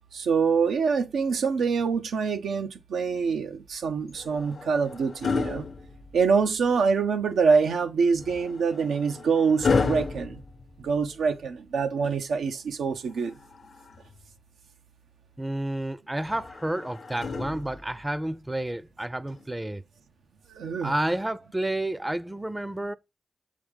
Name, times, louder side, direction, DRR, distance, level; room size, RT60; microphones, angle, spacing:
voice 1, 0.1-5.7 6.1-10.4 10.8-13.3 20.6-20.9, right 5 dB, 85° right, 0.6 m, -25 dB
sound 1, 4.1-6.6 8.1-11.3 13.1-14.3 16.2-18.1 19.3-19.5, left 4 dB, 70° left, 0.9 m, -32 dB
voice 2, 15.4-19.8 20.8-22.9, right 1 dB, 15° right, 0.5 m, -30 dB
7.0 x 5.0 x 3.4 m
supercardioid pair, 40°, 0 cm